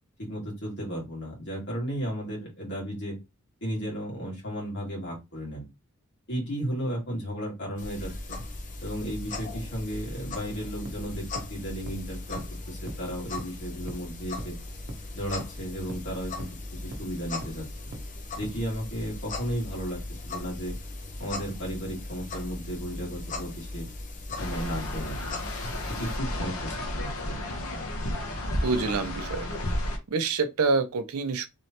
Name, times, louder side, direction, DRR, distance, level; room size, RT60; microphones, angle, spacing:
voice 1, 0.2-3.2 3.6-5.7 6.3-8.4 8.8-14.5 15.1-17.7 18.3-20.8 21.2-23.9 24.4-25.2 25.9-27.6, equal, 55° left, 2.2 m, -34 dB
sound 1, 7.8-26.2, left 2 dB, 35° left, 0.7 m, -38 dB
sound 2, 10.9-11.0 11.4-11.5 11.9-12.0 12.4-12.5 12.9-13.0 13.4-13.5 13.9-14.0 14.4-14.5 14.9-15.0 15.4-15.5 15.9-16.0 16.4-16.5 16.9-17.0 17.4-17.5 17.9-18.0 18.4-18.5, right 1 dB, 45° right, 0.9 m, -38 dB
sound 3, 24.4-30.0, left 1 dB, 80° left, 1.0 m, -32 dB
voice 2, 28.6-29.5 30.1-31.5, right 4 dB, 90° right, 0.5 m, -26 dB
3.6 x 3.2 x 2.8 m
head